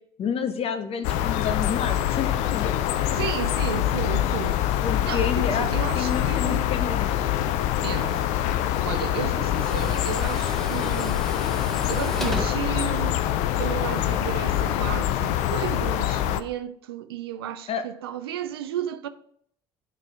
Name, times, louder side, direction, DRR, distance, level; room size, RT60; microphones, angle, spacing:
voice 1, 0.2-3.5 4.8-5.7 5.9-7.1 14.4-14.5 17.7-17.8, left 7 dB, 50° left, 0.8 m, -30 dB
sound 1, 1.0-16.4, left 12 dB, 65° left, 0.4 m, -25 dB
voice 2, 3.1-4.6 5.0-6.7 7.8-8.2 8.8-11.3 11.9-13.2 13.6-19.1, right 10 dB, 85° right, 0.4 m, -33 dB
Tools, 7.8-13.6, equal, 5° left, 1.1 m, -38 dB
9.3 x 3.4 x 3.6 m
hypercardioid pair, 60°, 13 cm